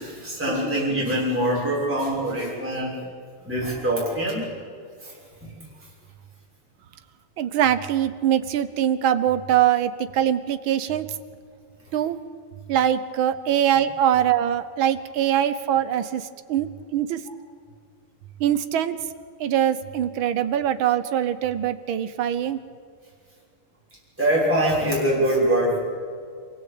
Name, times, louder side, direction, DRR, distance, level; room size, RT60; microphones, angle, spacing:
voice 1, 0.0-2.9 3.4-4.5 5.0-5.1 5.4-5.5 24.2-25.8, right 1 dB, 5° right, -7 dB, 6.5 m, -23 dB
voice 2, 7.4-11.1 11.9-12.2 12.7-17.2 18.4-19.0 19.4-22.6, right 10 dB, 70° right, 12 dB, 1.8 m, -23 dB
27.0 x 17.0 x 8.6 m, 2.2 s
omnidirectional pair, 2.4 m